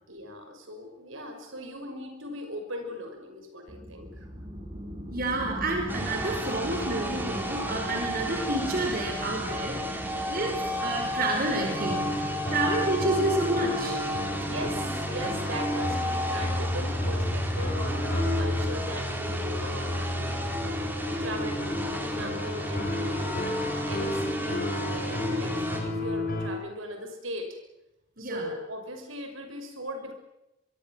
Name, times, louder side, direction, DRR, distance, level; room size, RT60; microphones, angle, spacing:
voice 1, 0.1-4.3 10.1-10.4 14.4-20.4 21.2-25.5 25.8-27.5 28.2-30.1, equal, 75° right, 5 dB, 6.2 m, -39 dB
sound 1, 3.7-15.8, equal, 30° right, 3.8 m, -40 dB
voice 2, 5.1-9.8 10.3-14.0 28.2-28.5, right 2 dB, 45° right, 3 dB, 4.9 m, -29 dB
sound 2, 5.9-25.8, equal, 10° right, 4.2 m, -33 dB
sound 3, 11.7-26.5, left 1 dB, 45° left, 4.9 m, -31 dB
26.0 x 23.0 x 7.5 m, 0.92 s
head